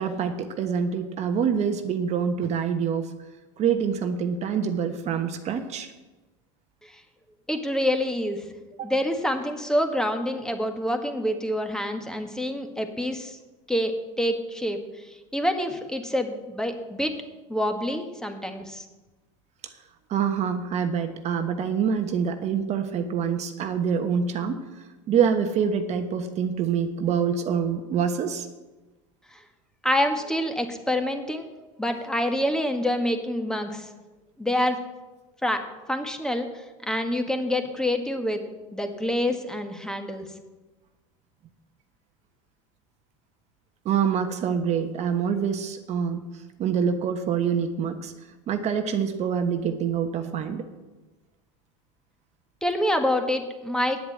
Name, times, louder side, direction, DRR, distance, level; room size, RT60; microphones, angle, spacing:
voice 1, 0.0-3.1 3.6-5.9 8.8-8.9 19.6-19.7 20.1-24.6 25.1-28.5 43.8-46.3 46.6-48.1 48.5-50.7, right 7 dB, 45° right, 7 dB, 1.2 m, -26 dB
voice 2, 7.5-8.4 8.8-13.4 13.7-17.1 17.5-18.8 29.3-29.4 29.8-31.5 31.8-33.9 34.4-34.8 35.4-38.4 38.7-40.3 52.6-54.0, left 1 dB, 5° left, 5 dB, 1.6 m, -27 dB
9.5 x 7.9 x 8.7 m, 1.1 s
supercardioid pair, 100°, 17 cm